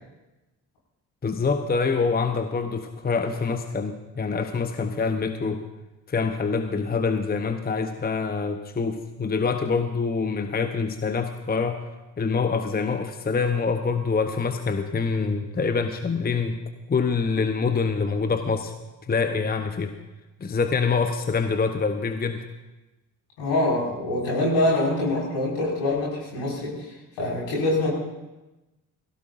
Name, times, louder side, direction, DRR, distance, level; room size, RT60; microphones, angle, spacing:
voice 1, 1.2-5.6 6.1-11.8 12.2-16.6 16.9-18.7 19.1-19.9 20.4-22.4, left 5 dB, 20° left, 8 dB, 0.9 m, -25 dB
voice 2, 23.4-27.9, left 1 dB, 65° left, -4 dB, 5.8 m, -25 dB
21.5 x 16.5 x 2.6 m, 1.0 s
figure-of-eight pair, 40°, 47 cm